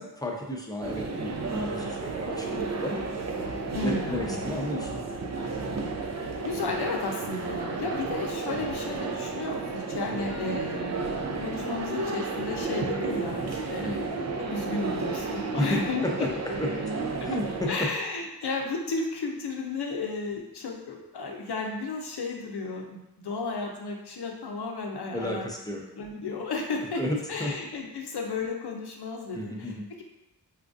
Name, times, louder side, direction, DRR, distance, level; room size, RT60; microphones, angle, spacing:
voice 1, 0.0-3.0 3.8-5.0 13.8-14.0 15.5-16.3 16.6-16.7 17.2-17.9 25.1-25.8 27.0-27.5 29.3-29.9, left 1 dB, 10° left, -1 dB, 0.6 m, -32 dB
sound 1, 0.8-17.7, right 3 dB, 40° right, 0.5 m, -32 dB
voice 2, 3.7-4.2 6.4-10.9 11.4-13.9 14.4-16.1 17.7-25.5 25.9-27.0 27.3-30.0, left 3 dB, 70° left, 1 dB, 0.7 m, -33 dB
4.4 x 2.4 x 2.5 m, 0.92 s
cardioid pair, 40°, 40 cm